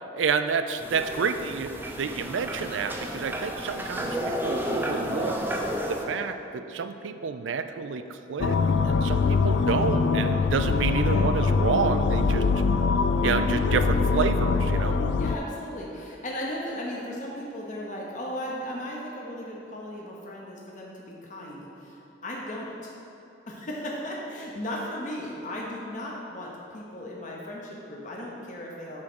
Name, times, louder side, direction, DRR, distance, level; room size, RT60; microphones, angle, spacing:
voice 1, 0.1-5.4 5.9-8.6 8.8-12.5 13.2-15.0, right 5 dB, 90° right, 9 dB, 0.4 m, -29 dB
sound 1, 0.8-6.0, equal, 10° right, 0.6 m, -32 dB
sound 2, 8.4-15.4, left 4 dB, 70° left, 0.3 m, -23 dB
voice 2, 15.1-22.9 23.5-29.0, left 1 dB, 45° left, -3 dB, 0.9 m, -36 dB
8.5 x 3.7 x 6.1 m, 3.0 s
head